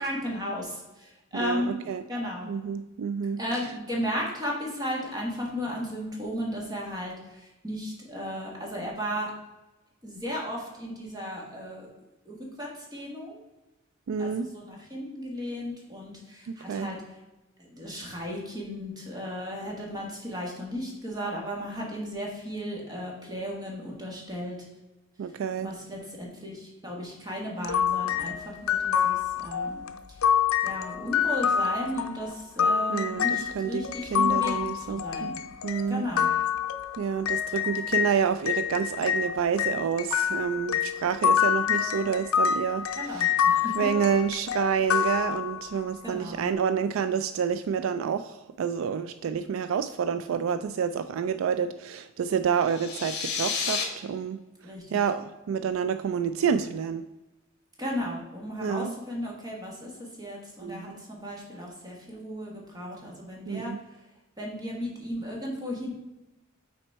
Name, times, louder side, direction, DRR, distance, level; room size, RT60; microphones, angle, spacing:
voice 1, 0.0-1.7 2.1-2.5 3.4-9.3 10.0-11.9 12.2-13.4 14.2-17.0 17.7-24.6 25.6-30.2 30.6-35.4 35.9-36.3 42.9-43.9 46.0-46.5 54.6-55.0 57.8-63.7 64.4-65.9, equal, 20° right, -2 dB, 1.6 m, -35 dB
voice 2, 1.3-2.0 2.5-3.4 14.1-14.5 16.7-16.9 25.2-25.7 32.9-33.8 34.1-35.3 35.6-36.1 37.0-43.3 43.8-54.4 54.9-57.0 58.6-58.9 60.6-61.0 63.5-63.8, right 7 dB, 70° right, 11 dB, 0.3 m, -28 dB
sound 1, 27.6-38.1 38.5-45.8, left 8 dB, 85° left, 0.5 m, -27 dB
sound 2, 52.6-53.8, left 6 dB, 50° left, 1.0 m, -30 dB
5.9 x 4.3 x 4.5 m, 1.0 s
head